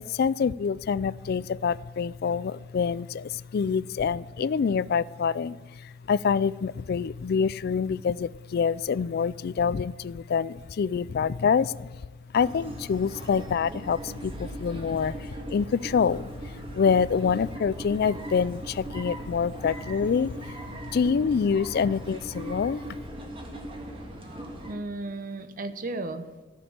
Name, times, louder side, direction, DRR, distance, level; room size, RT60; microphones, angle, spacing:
voice 1, 0.0-12.0 12.3-22.8, left 6 dB, 55° left, 20 dB, 0.3 m, -26 dB
sound 1, 12.3-24.7, right 1 dB, 30° right, 1.7 m, -39 dB
voice 2, 24.7-26.4, right 2 dB, 45° right, 10 dB, 0.9 m, -34 dB
14.0 x 6.3 x 8.8 m, 1.3 s
head